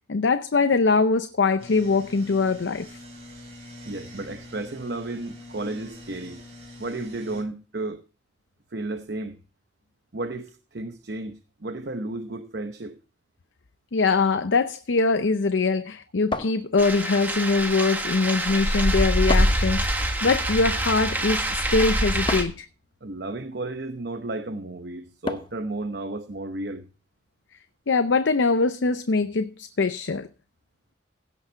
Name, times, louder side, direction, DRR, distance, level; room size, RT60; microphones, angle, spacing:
voice 1, 0.0-3.0 13.9-22.7 27.9-30.3, left 4 dB, 85° left, 0.6 m, -23 dB
sound 1, 1.6-7.4, left 1 dB, 35° right, 7.2 m, -44 dB
voice 2, 3.9-6.4 6.8-8.0 8.7-9.4 10.1-13.0 23.0-26.9, right 2 dB, 60° right, 0.8 m, -33 dB
sound 2, 16.3-17.2 19.3-19.7 22.3-22.7 25.3-25.7, left 2 dB, 25° left, 0.7 m, -31 dB
sound 3, 16.8-22.4, right 1 dB, 10° right, 1.5 m, -25 dB
16.5 x 6.0 x 4.5 m
head